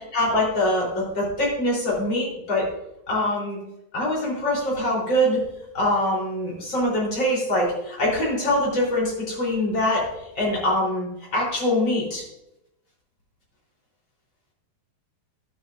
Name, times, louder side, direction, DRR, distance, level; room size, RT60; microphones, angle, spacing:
voice 1, 0.1-2.7 3.1-3.6 3.9-5.4 5.7-10.1 10.3-12.2, left 1 dB, 30° left, -5 dB, 4.1 m, -23 dB
11.5 x 11.0 x 2.6 m, 0.87 s
omnidirectional pair, 4.8 m